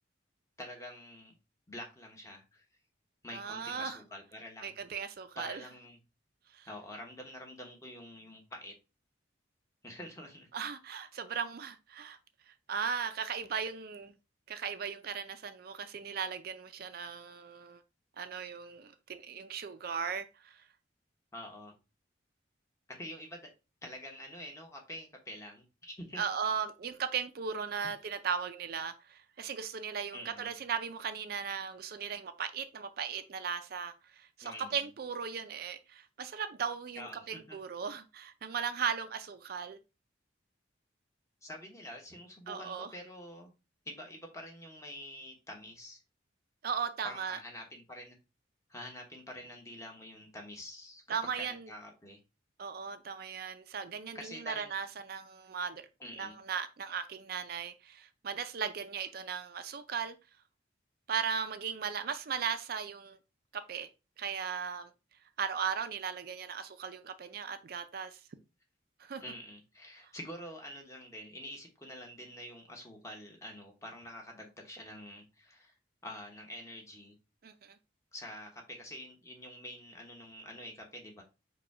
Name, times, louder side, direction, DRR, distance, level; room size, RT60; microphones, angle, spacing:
voice 1, 0.6-1.3 1.7-2.7 3.2-4.7 5.4-6.0 6.6-8.7 9.8-10.5 21.3-21.7 22.9-23.5 23.8-26.2 30.1-30.5 34.4-34.8 36.9-37.6 41.4-43.5 43.8-46.0 47.0-48.2 48.7-52.2 54.1-54.7 56.0-56.4 69.2-75.7 76.0-77.1 78.1-81.2, left 1 dB, 15° left, 1.1 m, -47 dB
voice 2, 3.3-4.0 4.6-5.6 6.5-6.7 10.5-12.2 12.5-14.1 14.5-17.8 18.2-20.6 26.2-39.8 42.5-42.9 46.6-47.4 51.1-51.7 52.6-55.9 56.2-60.1 61.1-63.2 63.5-63.9 64.2-64.9 65.4-68.2 69.0-69.2 77.4-77.8, right 6 dB, 50° right, 0.4 m, -37 dB
4.9 x 2.3 x 4.7 m
head